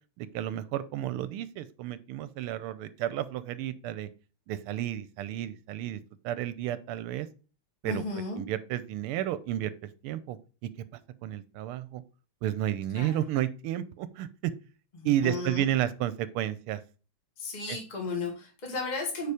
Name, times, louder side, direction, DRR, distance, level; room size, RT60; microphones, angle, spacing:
voice 1, 0.2-4.1 4.5-6.0 6.2-7.3 7.8-8.0 8.4-9.7 10.0-10.4 11.2-12.0 12.4-14.5 15.0-16.8 17.7-17.8, right 12 dB, 85° right, 14 dB, 1.4 m, -31 dB
voice 2, 7.8-8.4 12.9-13.2 14.9-15.6 17.4-19.3, left 3 dB, 20° left, 0 dB, 1.9 m, -34 dB
6.8 x 5.0 x 4.9 m, 0.35 s
omnidirectional pair, 2.4 m